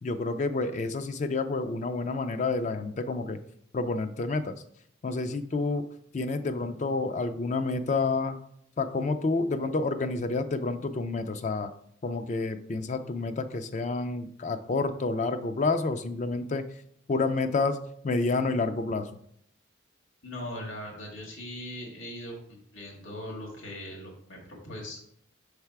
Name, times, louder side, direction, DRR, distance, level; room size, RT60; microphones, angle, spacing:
voice 1, 0.0-3.4 3.7-4.6 5.0-5.8 6.1-8.4 8.8-11.7 12.0-16.6 17.1-17.8 18.0-19.1, left 3 dB, 35° left, 9 dB, 0.3 m, -29 dB
voice 2, 20.2-25.0, left 1 dB, 75° left, -1 dB, 1.8 m, -40 dB
6.4 x 3.4 x 4.6 m, 0.69 s
head